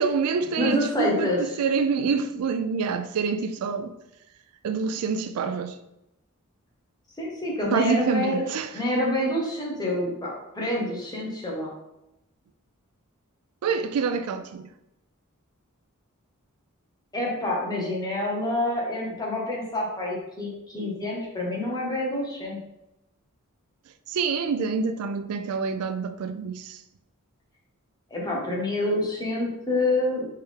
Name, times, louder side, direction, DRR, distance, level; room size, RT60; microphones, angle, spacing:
voice 1, 0.0-3.9 4.6-5.8 7.7-8.8 13.6-14.7 24.1-26.8, right 5 dB, 75° right, 0.4 m, -27 dB
voice 2, 0.6-1.4 7.2-8.4 8.7-11.7 17.1-22.6 28.1-30.3, left 1 dB, 20° left, 1.2 m, -27 dB
4.3 x 3.4 x 3.6 m
head